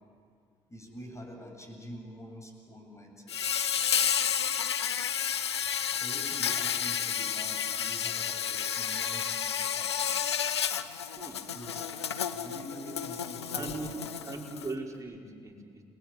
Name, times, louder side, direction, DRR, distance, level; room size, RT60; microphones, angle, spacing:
voice 1, 0.7-3.5 5.9-10.4 11.4-11.9 12.3-14.2, equal, 20° left, 3 dB, 7.7 m, -46 dB
Insect, 3.3-14.7, left 8 dB, 90° left, 0.7 m, -31 dB
voice 2, 13.5-13.9 14.3-15.8, right 3 dB, 25° right, -1 dB, 5.4 m, -39 dB
29.5 x 20.5 x 9.1 m, 2.2 s
figure-of-eight pair, 50°, 14 cm